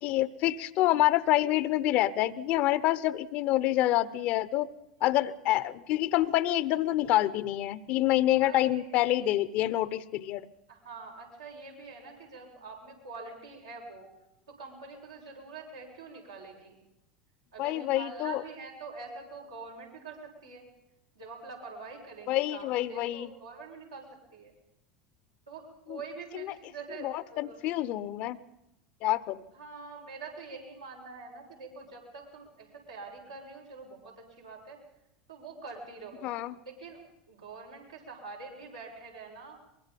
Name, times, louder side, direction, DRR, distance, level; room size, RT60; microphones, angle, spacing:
voice 1, 0.0-4.7 5.0-10.5 17.6-18.4 22.3-23.3 25.9-26.0 26.3-26.6 27.0-28.4 29.0-29.4 36.2-36.5, left 14 dB, 55° left, 17 dB, 1.0 m, -27 dB
voice 2, 8.4-9.3 10.7-14.1 14.5-16.8 17.5-20.7 21.2-24.1 24.3-24.5 25.5-27.6 29.5-34.8 35.3-36.3 36.7-37.0 37.3-39.6, right 4 dB, 90° right, -3 dB, 6.9 m, -45 dB
23.5 x 22.0 x 5.4 m, 0.87 s
hypercardioid pair, 80°, 3 cm